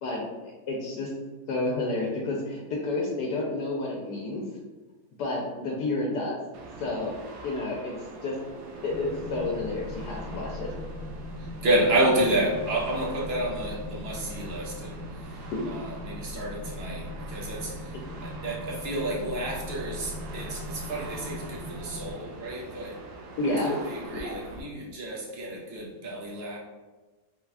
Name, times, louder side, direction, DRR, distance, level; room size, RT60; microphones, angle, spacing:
voice 1, 0.0-1.1 1.5-4.4 5.2-6.4 6.8-7.2 7.4-8.3 8.8-10.7 23.4-23.7 24.2-24.3, left 2 dB, 75° left, -2 dB, 1.2 m, -30 dB
sound 1, 6.5-24.6, right 3 dB, 75° right, 1.1 m, -45 dB
sound 2, 8.9-22.1, left 1 dB, 40° left, 1.3 m, -39 dB
voice 2, 11.4-15.4 15.6-23.0 23.6-26.6, right 1 dB, 50° right, -2 dB, 0.9 m, -30 dB
4.0 x 2.4 x 3.3 m, 1.2 s
omnidirectional pair, 1.8 m